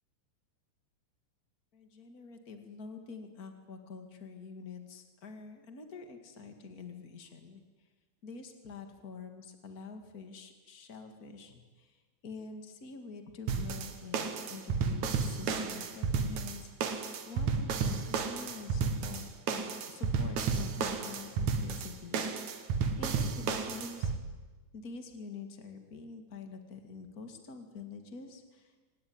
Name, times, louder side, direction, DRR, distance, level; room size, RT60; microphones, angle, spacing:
voice 1, 1.7-7.6 8.2-16.7 17.2-22.2 22.6-22.7 23.0-24.1 24.7-28.8, left 4 dB, 70° left, 6 dB, 0.8 m, -46 dB
sound 1, 13.5-24.2, right 5 dB, 55° right, 2.2 m, -32 dB
26.0 x 18.5 x 9.7 m, 1.3 s
omnidirectional pair, 5.6 m